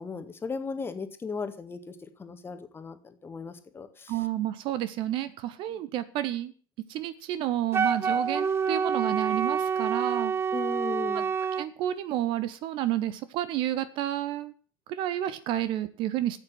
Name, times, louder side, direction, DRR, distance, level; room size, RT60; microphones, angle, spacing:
voice 1, 0.0-4.1 10.5-11.3, left 4 dB, 20° left, 9 dB, 1.8 m, -37 dB
voice 2, 4.1-6.5 6.9-10.3 11.6-14.5 14.9-16.4, right 13 dB, 45° right, 14 dB, 1.1 m, -30 dB
Wind instrument woodwind instrument, 7.7-11.7, right 6 dB, 20° right, 0.7 m, -27 dB
14.0 x 8.6 x 7.7 m, 0.41 s
figure-of-eight pair, 75°, 12 cm